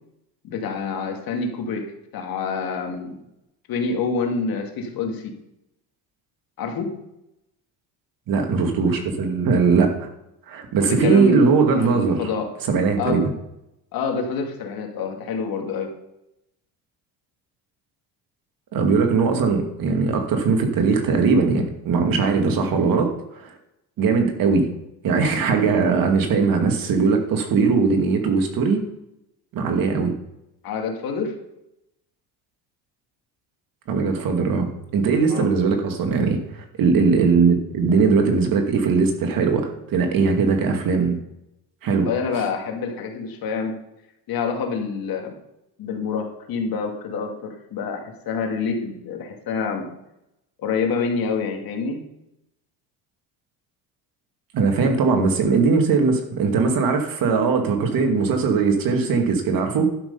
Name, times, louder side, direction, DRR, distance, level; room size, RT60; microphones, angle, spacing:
voice 1, 0.4-3.2 3.7-5.3 6.6-7.0 10.8-11.5 11.8-12.5 13.0-13.3 13.9-15.9 30.6-31.3 35.3-35.5 42.0-43.8 44.3-45.3 45.8-49.9 50.6-52.0, left 5 dB, 60° left, 3 dB, 2.3 m, -27 dB
voice 2, 8.3-10.1 10.5-12.2 12.7-13.2 18.7-23.1 23.3-23.5 24.0-24.7 25.0-28.8 29.5-30.1 33.9-41.2 41.8-42.1 54.5-59.9, right 4 dB, 55° right, 4 dB, 2.3 m, -20 dB
11.5 x 6.2 x 5.5 m, 0.87 s
supercardioid pair, 95°, 40 cm